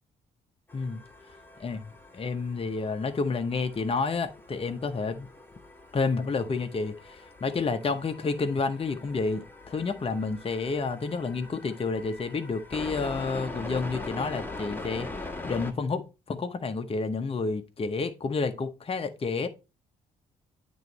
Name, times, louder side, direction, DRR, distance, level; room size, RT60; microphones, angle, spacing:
sound 1, 0.7-15.7, left 2 dB, 10° left, 1.5 m, -42 dB
voice 1, 1.6-5.3 5.9-15.1 15.4-19.5, left 4 dB, 30° left, 0.8 m, -30 dB
9.1 x 3.1 x 4.0 m
hypercardioid pair, 50°, 19 cm